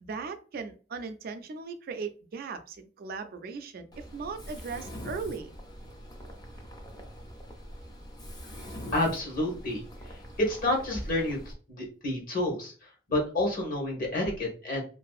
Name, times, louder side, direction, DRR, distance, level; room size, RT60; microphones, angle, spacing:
voice 1, 0.0-5.5, right 5 dB, 55° right, 8 dB, 0.4 m, -38 dB
Mechanisms, 3.9-11.5, equal, 20° left, 0.4 m, -44 dB
voice 2, 8.9-9.8 10.4-11.4 11.7-12.7 13.1-14.8, left 1 dB, 50° left, 0 dB, 1.0 m, -29 dB
2.6 x 2.4 x 2.3 m, 0.38 s
head